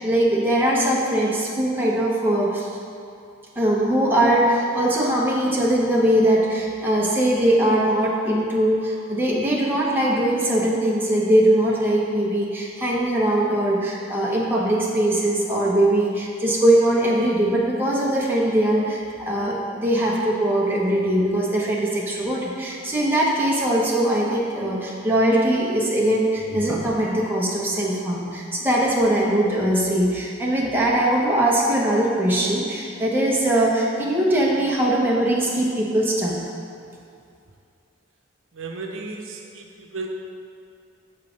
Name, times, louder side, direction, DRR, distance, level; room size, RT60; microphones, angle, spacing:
voice 1, 0.0-2.7 3.6-36.3, right 1 dB, 10° right, -5 dB, 1.0 m, -21 dB
voice 2, 38.5-40.1, right 3 dB, 80° right, 2 dB, 0.7 m, -34 dB
7.3 x 5.6 x 5.2 m, 2.5 s
head